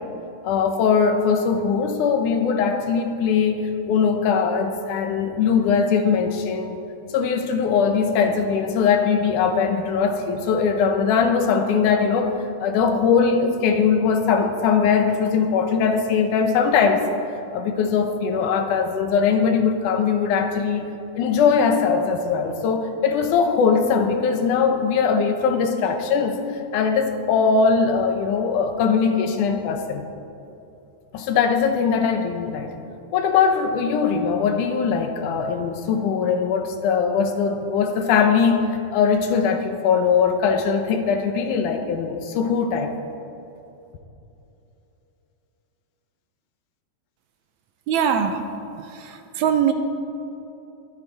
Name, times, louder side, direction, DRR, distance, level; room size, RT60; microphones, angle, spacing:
voice 1, 0.4-6.8 7.1-12.3 12.6-17.0 17.5-20.9 21.2-30.0 31.1-32.7 33.1-38.7 38.9-42.9, left 6 dB, 85° left, 5 dB, 2.5 m, -21 dB
voice 2, 47.9-48.4 48.8-49.7, right 8 dB, 75° right, 7 dB, 2.0 m, -22 dB
23.0 x 8.2 x 4.1 m, 2.8 s
omnidirectional pair, 3.5 m